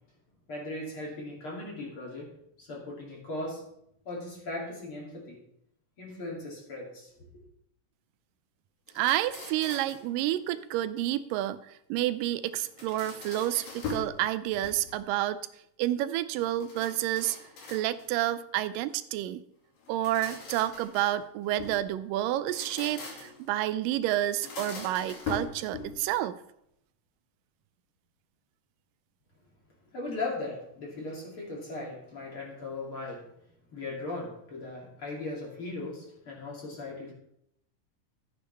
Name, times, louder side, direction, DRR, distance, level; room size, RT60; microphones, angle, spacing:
voice 1, 0.5-3.6 4.0-5.4 6.0-7.1 29.9-33.2 33.7-37.1, left 2 dB, 40° left, -3 dB, 3.3 m, -38 dB
sound 1, 8.9-10.1 12.5-14.2 14.5-15.1 16.6-18.2 19.8-21.8 22.4-23.5 24.2-26.1, left 4 dB, 85° left, 4.1 m, -41 dB
voice 2, 9.0-15.4 15.8-17.4 17.7-19.4 19.9-26.4, right 14 dB, 85° right, 14 dB, 2.2 m, -29 dB
13.5 x 9.1 x 3.4 m, 0.76 s
omnidirectional pair, 3.8 m